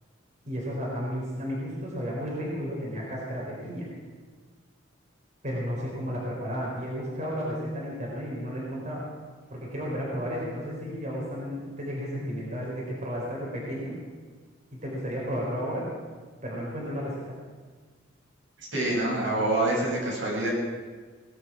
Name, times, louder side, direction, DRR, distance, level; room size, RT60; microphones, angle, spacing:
voice 1, 0.4-3.9 5.4-9.0 9.5-14.0 14.7-15.9 16.4-17.3, equal, 40° right, -4 dB, 4.6 m, -33 dB
voice 2, 18.6-20.5, right 1 dB, 85° right, -4 dB, 6.9 m, -26 dB
19.0 x 11.5 x 6.4 m, 1.5 s
head